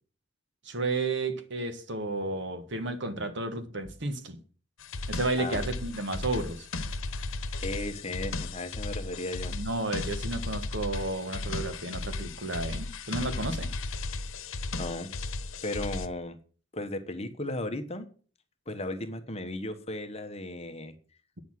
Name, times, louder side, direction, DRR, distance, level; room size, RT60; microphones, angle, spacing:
voice 1, 0.6-4.4 5.1-6.7 9.5-13.7, right 2 dB, 60° right, 1.5 m, -32 dB
sound 1, 4.8-16.1, left 3 dB, 85° left, 1.0 m, -35 dB
voice 2, 7.5-9.5 14.8-15.1 15.6-16.4 16.7-18.1 18.7-20.9, left 1 dB, 30° left, 1.2 m, -35 dB
9.5 x 6.5 x 7.6 m
head